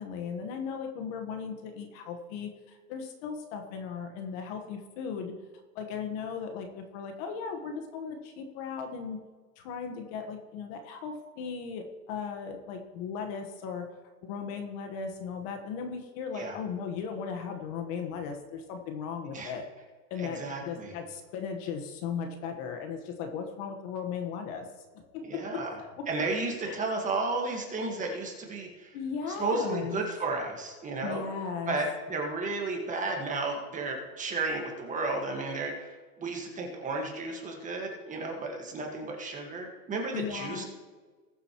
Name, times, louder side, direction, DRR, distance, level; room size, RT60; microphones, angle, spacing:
voice 1, 0.0-5.3 5.7-9.2 9.6-13.9 14.2-19.6 20.1-24.7 24.9-26.1 26.6-26.8 28.9-30.0 31.0-31.7 40.1-40.6, left 6 dB, 40° left, 5 dB, 1.4 m, -37 dB
voice 2, 20.2-20.9 25.3-25.8 26.1-29.0 29.3-31.2 31.7-40.6, right 3 dB, 15° right, 1 dB, 1.7 m, -33 dB
20.0 x 7.7 x 3.1 m, 1.4 s
supercardioid pair, 145°, 48 cm